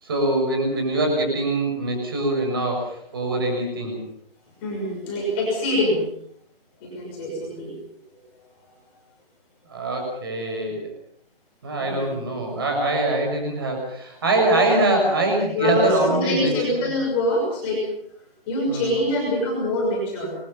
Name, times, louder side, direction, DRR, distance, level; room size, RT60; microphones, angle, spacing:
voice 1, 0.0-4.0 9.7-10.9 11.6-16.6 18.7-18.9, right 2 dB, 25° right, 2 dB, 6.7 m, -23 dB
voice 2, 4.6-6.0 6.8-7.7 11.8-12.1 15.5-17.8 18.5-20.4, left 1 dB, 10° left, -3 dB, 6.0 m, -24 dB
29.0 x 22.5 x 5.6 m, 0.66 s
hypercardioid pair, 175°, 29 cm